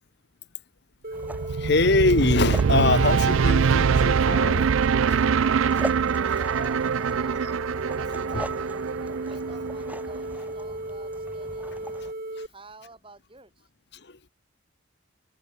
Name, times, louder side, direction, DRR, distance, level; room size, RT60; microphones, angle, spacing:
sound 1, 1.0-12.5, right 1 dB, 45° right, 2.3 m, -35 dB
sound 2, 1.1-12.1, right 1 dB, 10° right, 4.5 m, -41 dB
sound 3, 1.2-10.4, right 6 dB, 75° right, 0.4 m, -24 dB
voice 1, 1.6-4.7 8.3-8.4, left 3 dB, 55° left, 1.2 m, -23 dB
voice 2, 6.4-7.4 7.9-12.1 12.5-13.6, right 3 dB, 25° right, 6.3 m, -48 dB
head